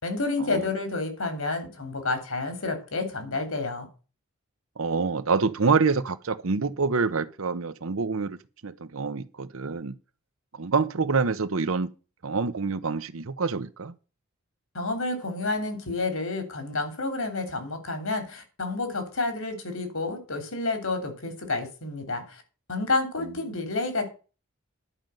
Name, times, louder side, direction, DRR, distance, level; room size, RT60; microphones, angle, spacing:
voice 1, 0.0-3.9 14.7-22.4 22.7-24.1, left 3 dB, 75° left, 3.2 m, -30 dB
voice 2, 4.8-8.4 8.6-9.9 10.5-11.9 12.2-13.9 23.2-23.3, right 4 dB, 70° right, 0.8 m, -26 dB
11.0 x 5.4 x 7.7 m
head